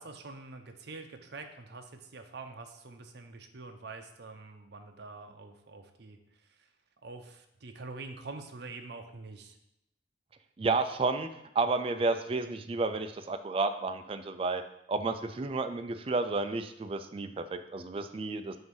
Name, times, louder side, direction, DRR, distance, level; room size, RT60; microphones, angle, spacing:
voice 1, 0.0-6.2 7.0-9.6, right 3 dB, 60° right, 6 dB, 0.7 m, -45 dB
voice 2, 10.6-11.3 11.5-14.6 14.9-18.6, right 3 dB, 30° right, 8 dB, 0.3 m, -31 dB
7.7 x 2.7 x 5.3 m, 0.83 s
head